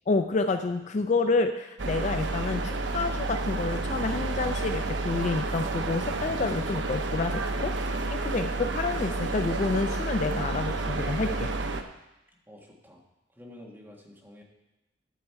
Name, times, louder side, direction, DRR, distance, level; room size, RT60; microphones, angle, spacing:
voice 1, 0.1-11.5, left 3 dB, 40° left, 8 dB, 0.4 m, -29 dB
sound 1, 1.8-11.8, right 2 dB, 80° right, 0.7 m, -30 dB
voice 2, 12.5-13.0 13.3-14.4, left 1 dB, 10° right, -1 dB, 1.6 m, -49 dB
12.0 x 6.4 x 4.6 m, 0.95 s
head